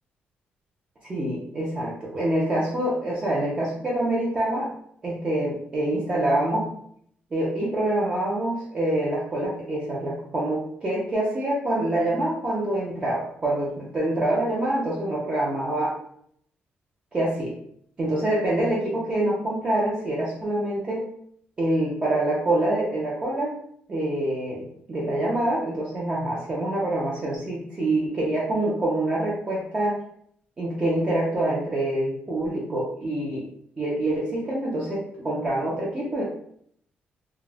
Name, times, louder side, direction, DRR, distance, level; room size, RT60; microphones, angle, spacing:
voice 1, 1.1-4.7 5.0-6.7 7.3-15.9 17.1-17.5 18.0-21.0 21.6-23.5 23.9-30.0 30.6-33.4 33.8-36.2, right 1 dB, 25° right, -6 dB, 0.6 m, -26 dB
2.3 x 2.1 x 3.2 m, 0.66 s
cardioid pair, 135°, 4 cm